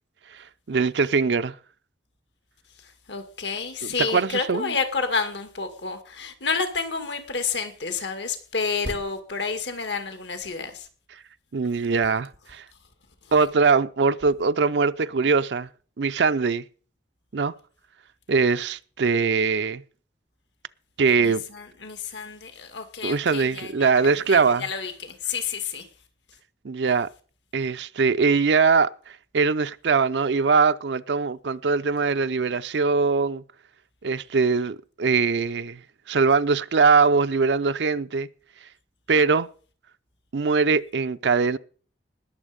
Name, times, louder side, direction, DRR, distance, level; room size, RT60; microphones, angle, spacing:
voice 1, 0.3-1.6 4.1-4.7 11.5-12.6 13.3-15.7 16.0-16.6 17.3-17.5 18.3-19.8 21.0-21.4 23.0-24.6 26.6-27.1 27.5-28.9 29.3-33.4 34.0-35.8 36.1-38.3 39.1-39.5 40.3-41.6, right 5 dB, 75° right, 0.5 m, -22 dB
voice 2, 2.7-10.9 13.2-13.3 21.2-25.9, left 5 dB, 80° left, 2.2 m, -30 dB
20.0 x 7.2 x 5.1 m
head